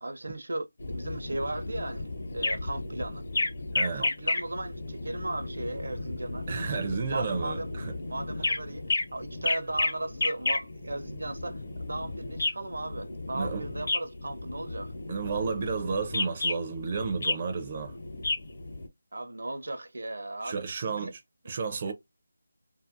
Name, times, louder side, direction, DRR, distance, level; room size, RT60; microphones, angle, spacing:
voice 1, 0.0-3.3 3.9-6.5 6.9-7.7 8.1-8.8 9.1-14.9 19.1-21.1 21.4-21.5 21.9-22.0, right 2 dB, 75° right, 0.6 m, -36 dB
sound 1, 0.8-18.9, left 2 dB, 50° left, 0.8 m, -33 dB
voice 2, 3.7-4.1 6.5-7.9 13.3-13.6 15.1-17.9 20.4-21.9, right 5 dB, 25° right, 0.4 m, -32 dB
2.7 x 2.4 x 2.5 m
figure-of-eight pair, 175°, 0 cm